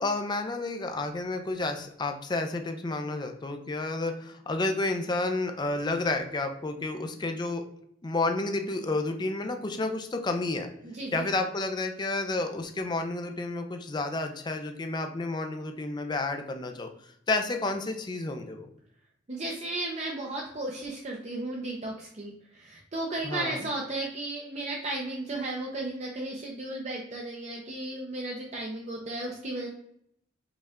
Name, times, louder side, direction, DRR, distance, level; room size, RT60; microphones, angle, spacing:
voice 1, 0.0-7.6 8.0-10.7 11.1-18.7 23.2-23.6, left 2 dB, 20° left, 6 dB, 0.4 m, -31 dB
voice 2, 19.3-29.7, right 2 dB, 35° right, -1 dB, 0.5 m, -34 dB
5.2 x 2.3 x 3.5 m, 0.72 s
head